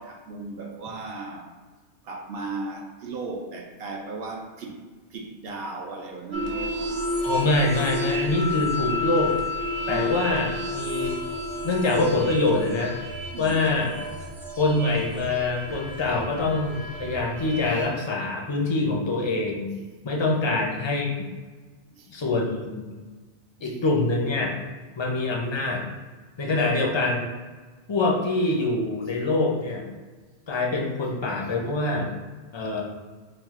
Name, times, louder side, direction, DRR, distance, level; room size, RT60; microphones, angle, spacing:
voice 1, 0.0-1.5 2.0-4.8 5.1-6.8 13.3-13.7 21.9-22.1 23.6-23.8, right 3 dB, 65° right, 0 dB, 0.8 m, -36 dB
sound 1, 6.3-17.8, left 1 dB, 40° right, 0.4 m, -31 dB
voice 2, 7.2-9.3 9.9-11.1 11.6-12.9 13.4-13.9 14.6-19.7 20.0-21.2 22.1-22.8 23.6-24.5 25.0-25.9 26.4-27.3 27.9-29.8 30.5-32.1 32.5-32.8, left 2 dB, 45° left, -1 dB, 0.4 m, -24 dB
4.7 x 2.1 x 3.5 m, 1.4 s
omnidirectional pair, 1.2 m